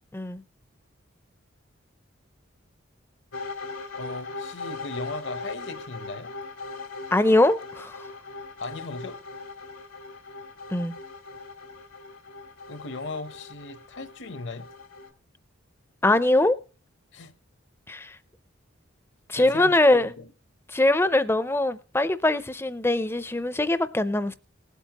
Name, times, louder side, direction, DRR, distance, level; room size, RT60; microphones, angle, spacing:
sound 1, 3.3-15.1, left 3 dB, 85° left, 1.9 m, -40 dB
voice 1, 3.9-6.3 8.6-9.2 12.7-14.7 17.1-17.3 19.3-20.3, left 3 dB, 60° left, 0.8 m, -37 dB
voice 2, 7.1-7.9 10.7-10.9 16.0-16.6 17.9-18.2 19.3-20.1 20.7-24.3, left 2 dB, 10° left, 0.5 m, -22 dB
19.5 x 8.2 x 2.9 m
head